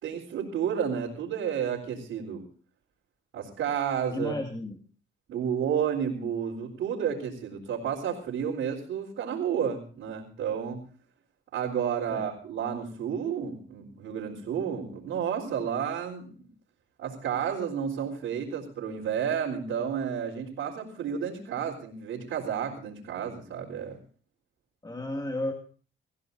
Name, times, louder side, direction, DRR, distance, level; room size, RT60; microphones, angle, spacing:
voice 1, 0.0-2.4 3.3-4.3 5.3-10.8 11.5-16.3 17.0-24.0, right 8 dB, 80° right, -5 dB, 4.0 m, -31 dB
voice 2, 4.1-4.8 12.1-12.3 24.8-25.5, left 1 dB, 20° left, 3 dB, 2.2 m, -32 dB
25.0 x 15.5 x 2.7 m, 0.40 s
cardioid pair, 90°, 20 cm